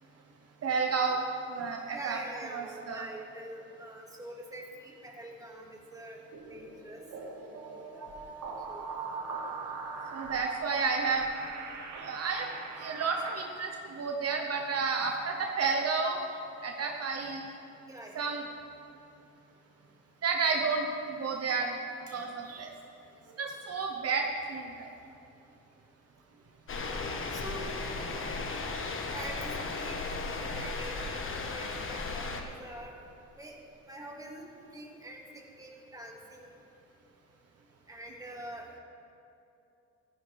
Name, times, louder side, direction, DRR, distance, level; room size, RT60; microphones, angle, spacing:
voice 1, 0.6-1.2 1.5-2.2 2.5-3.1 10.1-11.3 12.0-12.5 12.8-16.2 16.6-17.4 18.1-18.4 20.2-21.8 22.1-22.7 23.4-24.9, right 4 dB, 55° right, 2 dB, 1.1 m, -31 dB
voice 2, 1.9-6.2 6.5-7.0 7.5-8.2 8.7-8.9 17.9-18.2 27.3-27.7 29.1-30.0 30.5-32.9 33.3-33.6 33.9-36.6 37.9-38.7, right 1 dB, 10° right, -1 dB, 2.2 m, -45 dB
sound 1, 6.3-13.4, right 4 dB, 75° right, 1.6 m, -41 dB
sound 2, 26.7-32.4, left 3 dB, 45° left, 1.4 m, -35 dB
15.0 x 14.5 x 3.5 m, 2.7 s
cardioid pair, 90°, 30 cm